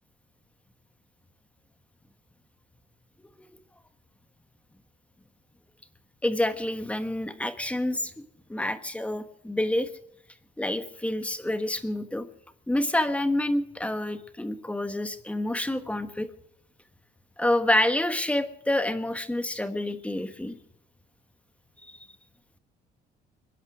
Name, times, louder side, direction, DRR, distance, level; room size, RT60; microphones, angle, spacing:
voice 1, 6.2-8.1 8.5-9.9 10.6-12.2 12.7-16.3 17.4-20.5 21.9-22.0, left 1 dB, 5° left, 10 dB, 1.3 m, -28 dB
25.5 x 11.0 x 4.9 m, 0.76 s
cardioid pair, 110°, 17 cm